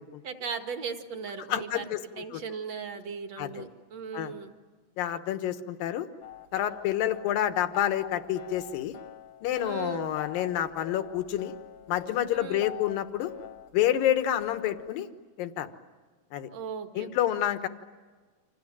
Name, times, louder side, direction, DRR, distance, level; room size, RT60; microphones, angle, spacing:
voice 1, 0.2-1.8 2.2-4.5 9.6-10.1 12.3-12.7 16.5-17.1, right 5 dB, 55° right, 6 dB, 2.8 m, -37 dB
voice 2, 1.5-2.0 2.3-2.4 3.4-3.7 4.1-4.3 5.0-6.1 6.5-8.9 9.4-11.5 11.9-13.3 13.7-15.1 15.4-15.7 16.3-16.5 17.0-17.7, left 11 dB, 85° left, 9 dB, 3.0 m, -28 dB
sound 1, 6.2-14.9, left 11 dB, 60° left, 1.7 m, -45 dB
29.5 x 26.5 x 7.5 m, 1.4 s
omnidirectional pair, 3.9 m